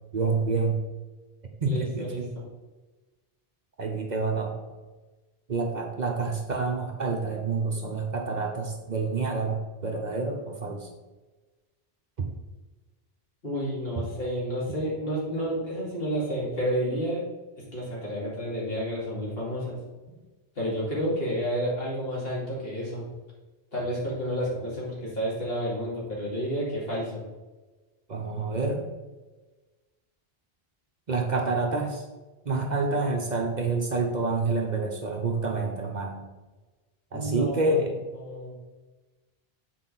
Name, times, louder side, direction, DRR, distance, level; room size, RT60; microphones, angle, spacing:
voice 1, 0.1-0.8 1.6-2.3 3.8-4.6 5.5-10.9 12.2-12.3 28.1-28.9 31.1-32.0 32.4-36.3 37.1-37.9, right 3 dB, 45° right, 2 dB, 1.0 m, -28 dB
voice 2, 1.7-2.4 13.4-17.2 17.6-19.8 20.5-23.0 23.7-27.2 37.1-37.6 38.1-38.5, equal, 70° left, -6 dB, 2.8 m, -30 dB
8.0 x 4.5 x 4.0 m, 1.2 s
omnidirectional pair, 1.1 m